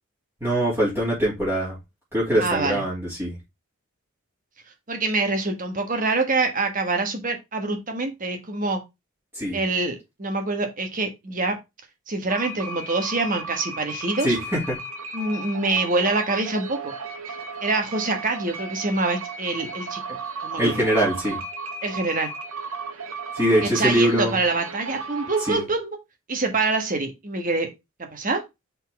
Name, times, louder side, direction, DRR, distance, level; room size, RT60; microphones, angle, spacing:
voice 1, 0.4-1.7 2.1-3.4 9.3-9.6 14.2-14.6 20.6-21.4 23.3-24.4 25.5-25.6, right 1 dB, 10° right, 3.1 m, -22 dB
voice 2, 2.4-2.8 4.9-8.8 9.5-11.6 12.1-14.4 15.1-16.9 17.6-20.0 20.4-20.8 21.8-22.3 23.6-26.0 26.3-27.7 28.1-28.4, right 3 dB, 40° right, 1.3 m, -25 dB
sound 1, 12.3-25.6, right 4 dB, 85° right, 1.4 m, -35 dB
5.5 x 4.0 x 4.6 m
head